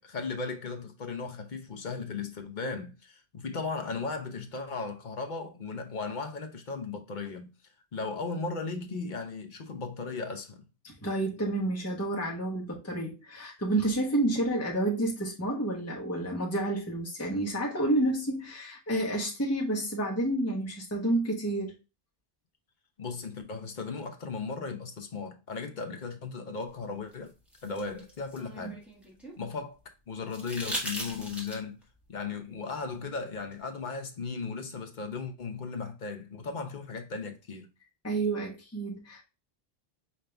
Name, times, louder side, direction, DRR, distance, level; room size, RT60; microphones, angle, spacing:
voice 1, 0.0-7.5 7.9-10.6 23.0-27.3 27.6-28.8 29.4-29.8 30.1-31.8 32.1-37.7, left 4 dB, 50° left, 0.9 m, -36 dB
voice 2, 10.8-21.7 28.6-28.8 38.0-39.2, right 1 dB, 15° left, 1.1 m, -30 dB
sound 1, 27.1-29.4 30.3-31.8 33.5-33.6, equal, ahead, 1.3 m, -38 dB
5.2 x 2.8 x 3.2 m
omnidirectional pair, 1.0 m